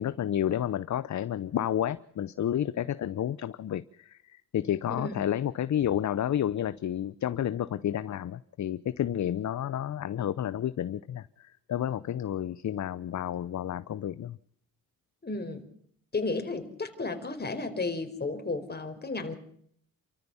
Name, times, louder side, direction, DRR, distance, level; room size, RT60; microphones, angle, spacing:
voice 1, 0.0-14.4, left 10 dB, 50° left, 0.8 m, -31 dB
voice 2, 15.2-15.6 16.1-19.3, left 3 dB, 25° left, 4.8 m, -33 dB
29.0 x 14.0 x 7.1 m
cardioid pair, 70°, 37 cm